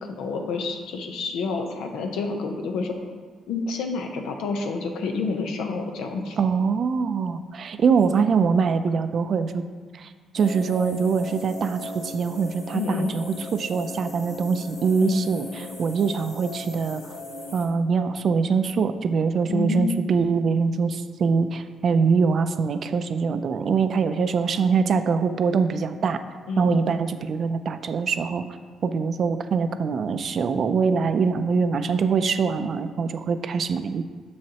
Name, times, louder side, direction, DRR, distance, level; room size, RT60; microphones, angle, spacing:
voice 1, 0.0-2.9 3.5-6.4 12.7-13.1 15.0-15.3 19.5-20.0 26.5-26.9, left 4 dB, 85° left, 4 dB, 0.8 m, -28 dB
voice 2, 6.4-9.6 10.0-13.2 13.5-17.1 17.5-26.2 26.6-28.4 28.8-34.1, right 5 dB, 55° right, 10 dB, 0.4 m, -23 dB
sound 1, 10.4-17.7, left 2 dB, 70° left, 1.3 m, -39 dB
7.1 x 6.2 x 2.9 m, 1.5 s
cardioid pair, 90°, 0 cm